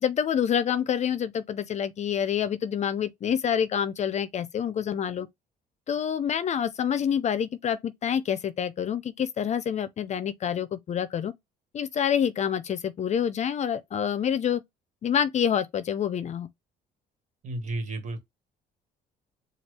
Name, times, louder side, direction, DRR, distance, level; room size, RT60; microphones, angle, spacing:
voice 1, 0.0-5.3 5.9-11.3 11.7-14.6 15.0-16.5, left 8 dB, 45° left, 0.5 m, -27 dB
voice 2, 17.4-18.3, right 2 dB, 45° right, 2.0 m, -33 dB
4.4 x 2.4 x 3.3 m
cardioid pair, 110°, 17 cm